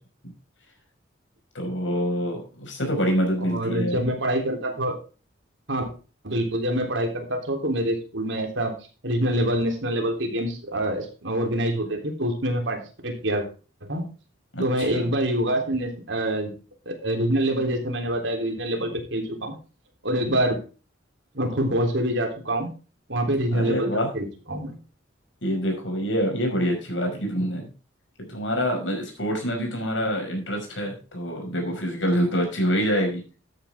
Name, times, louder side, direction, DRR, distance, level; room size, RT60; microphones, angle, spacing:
voice 1, 1.5-4.0 14.5-15.1 23.5-24.1 25.4-27.7 28.2-33.2, equal, 75° left, 2 dB, 5.5 m, -26 dB
voice 2, 3.5-5.0 5.7-5.9 6.2-8.7 9.0-13.5 13.9-14.0 14.6-16.5 16.8-19.5 20.0-20.6 21.3-22.7 23.1-24.8, right 1 dB, 70° right, 3 dB, 3.4 m, -26 dB
13.0 x 8.9 x 3.6 m, 0.34 s
head